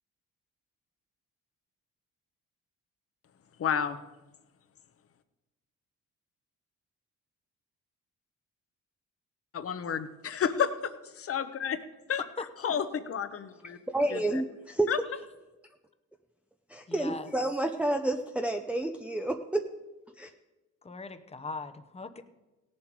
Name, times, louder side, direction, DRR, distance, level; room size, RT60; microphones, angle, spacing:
voice 1, 3.6-4.0 9.5-11.8 12.1-12.2 12.6-13.8 14.1-14.4 14.9-15.0, left 8 dB, 50° left, 11 dB, 1.0 m, -31 dB
voice 2, 12.2-12.7 16.9-17.3 20.8-22.2, left 3 dB, 20° left, 10 dB, 0.9 m, -40 dB
voice 3, 13.9-14.9 16.7-19.6 20.2-20.3, right 1 dB, 5° right, 4 dB, 0.6 m, -29 dB
17.0 x 7.4 x 4.7 m, 1.1 s
cardioid pair, 90°, 30 cm